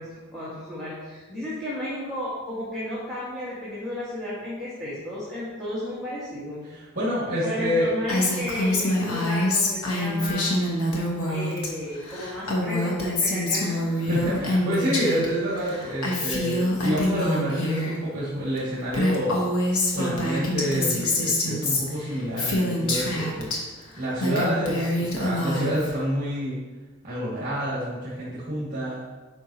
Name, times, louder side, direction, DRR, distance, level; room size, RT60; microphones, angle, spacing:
voice 1, 0.0-6.7 7.4-10.5 11.2-14.0, left 1 dB, 5° left, -12 dB, 1.7 m, -33 dB
voice 2, 6.6-7.9 14.1-19.4 19.9-26.6 27.0-29.0, equal, 35° right, -9 dB, 2.1 m, -28 dB
Female speech woman speaking, 8.1-11.7 12.0-15.3 15.5-17.9 18.6-18.7 18.9-23.6 24.0-25.9, left 1 dB, 85° left, 1.4 m, -25 dB
9.3 x 5.5 x 2.9 m, 1.3 s
head